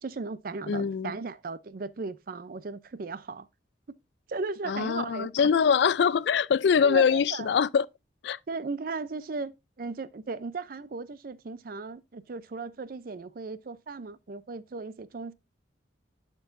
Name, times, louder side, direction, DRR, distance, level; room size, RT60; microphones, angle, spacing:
voice 1, 0.0-3.5 4.3-5.5 6.8-7.5 8.5-15.3, right 4 dB, 50° right, 0.5 m, -36 dB
voice 2, 0.7-1.1 4.7-7.9 8.2-8.4, left 6 dB, 60° left, 0.3 m, -23 dB
13.0 x 4.6 x 2.5 m
head